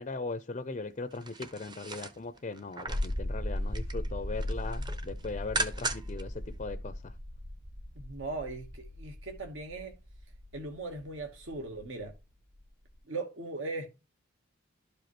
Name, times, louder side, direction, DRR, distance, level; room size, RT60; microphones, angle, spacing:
voice 1, 0.0-7.1, left 3 dB, 35° left, 0.4 m, -39 dB
sound 1, 1.1-3.2 3.6-4.1 4.4-6.2 6.6-6.7, right 2 dB, 20° right, 0.7 m, -37 dB
sound 2, 2.9-13.0, left 1 dB, 50° right, 2.0 m, -38 dB
voice 2, 8.0-9.9 10.5-12.1 13.1-13.9, right 3 dB, 65° right, 1.2 m, -39 dB
12.0 x 5.0 x 3.0 m
head